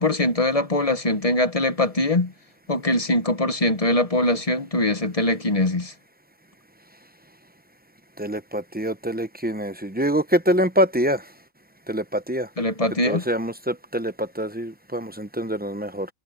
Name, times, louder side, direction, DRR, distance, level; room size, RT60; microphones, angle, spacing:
voice 1, 0.0-2.3 2.7-5.9 12.6-13.3, left 1 dB, 30° left, 1.2 m, -22 dB
voice 2, 8.2-11.2 11.9-12.5 13.0-16.1, equal, 10° right, 0.5 m, -25 dB
omnidirectional pair, 1.4 m